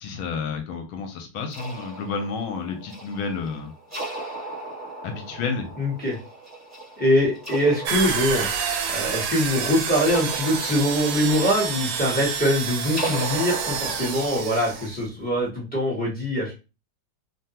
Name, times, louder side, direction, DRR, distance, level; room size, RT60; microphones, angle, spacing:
voice 1, 0.0-3.7 5.0-5.7, left 5 dB, 75° left, 5 dB, 1.3 m, -30 dB
sound 1, 1.5-14.9, right 2 dB, 10° right, 0.8 m, -37 dB
voice 2, 5.8-6.2 7.0-8.5 8.9-16.5, equal, 15° left, -5 dB, 0.3 m, -23 dB
sound 2, 7.9-15.0, right 6 dB, 75° right, 1.2 m, -29 dB
3.4 x 2.2 x 2.8 m, 0.29 s
omnidirectional pair, 2.4 m